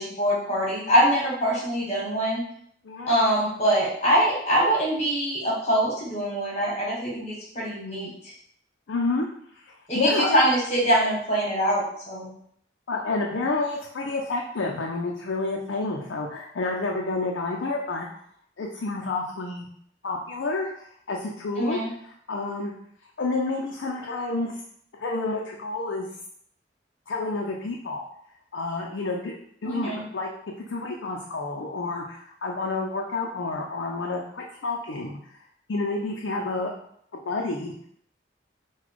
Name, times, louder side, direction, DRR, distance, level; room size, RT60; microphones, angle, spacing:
voice 1, 0.0-2.4 3.1-8.1 9.9-12.3 21.6-21.9 29.6-30.0, equal, 35° left, -5 dB, 1.6 m, -23 dB
voice 2, 2.8-3.1 8.9-9.3 9.5-10.3 12.9-18.1 18.6-19.7 20.0-22.7 23.2-24.5 25.0-26.1 27.1-28.1 28.5-29.4 29.6-30.3 30.6-35.2 35.7-36.7 37.3-37.7, left 3 dB, 90° left, -1 dB, 0.5 m, -29 dB
4.0 x 2.3 x 4.6 m, 0.65 s
head